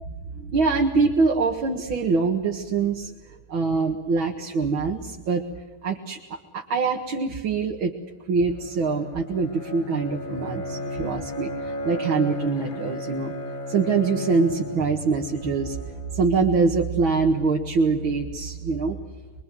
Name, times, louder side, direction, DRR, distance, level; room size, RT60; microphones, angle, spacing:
voice 1, 0.0-3.1 3.5-5.4 5.8-7.9 8.3-13.3 13.7-15.8 16.1-19.0, right 4 dB, 75° right, 1 dB, 2.6 m, -24 dB
Bowed string instrument, 8.5-16.3, left 1 dB, 65° left, 3.1 m, -34 dB
25.0 x 24.0 x 7.7 m, 1.3 s
omnidirectional pair, 2.3 m